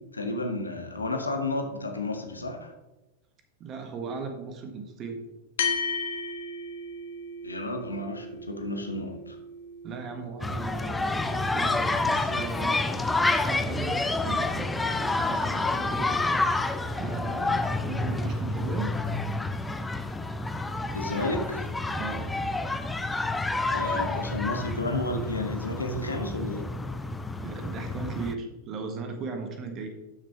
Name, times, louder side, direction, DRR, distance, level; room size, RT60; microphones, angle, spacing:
voice 1, 0.1-2.7 7.4-9.4 20.9-21.7 23.7-26.7, left 2 dB, 80° left, 4 dB, 1.4 m, -32 dB
voice 2, 3.6-5.2 9.8-16.6 16.9-18.9 21.9-22.3 27.4-29.9, right 4 dB, 30° right, 5 dB, 1.5 m, -37 dB
sound 1, 5.6-14.3, left 4 dB, 60° left, 1.1 m, -37 dB
sound 2, 10.4-28.4, left 2 dB, 10° left, 0.6 m, -29 dB
12.0 x 6.5 x 3.5 m, 1.0 s
figure-of-eight pair, 90°, 0 cm